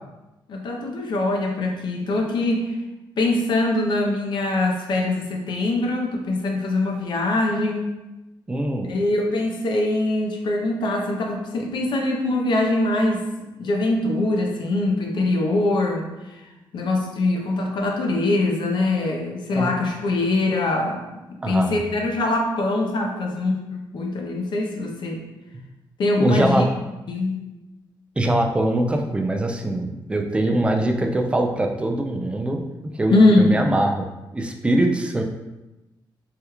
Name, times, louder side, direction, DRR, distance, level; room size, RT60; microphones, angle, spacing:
voice 1, 0.5-2.7 3.2-7.9 8.9-13.2 13.6-16.4 16.7-21.0 21.3-25.2 26.0-26.7 27.1-27.4 33.1-33.6, left 2 dB, 65° left, 1 dB, 0.6 m, -22 dB
voice 2, 8.5-8.9 19.5-19.7 21.4-21.8 26.2-26.7 28.2-34.1 34.3-35.2, right 1 dB, 15° right, 2 dB, 0.3 m, -22 dB
3.3 x 2.3 x 2.9 m, 1.0 s
cardioid pair, 130°, 9 cm